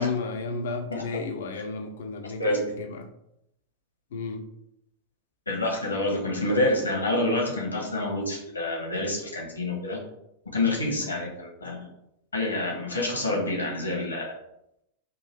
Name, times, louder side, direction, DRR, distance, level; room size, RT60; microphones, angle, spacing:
voice 1, 0.0-3.1 4.1-4.4, left 4 dB, 60° left, 6 dB, 0.6 m, -33 dB
voice 2, 5.5-10.0 10.5-11.9 12.3-14.3, left 2 dB, 75° left, 0 dB, 1.1 m, -27 dB
3.8 x 2.6 x 4.4 m, 0.80 s
figure-of-eight pair, 90°, 0 cm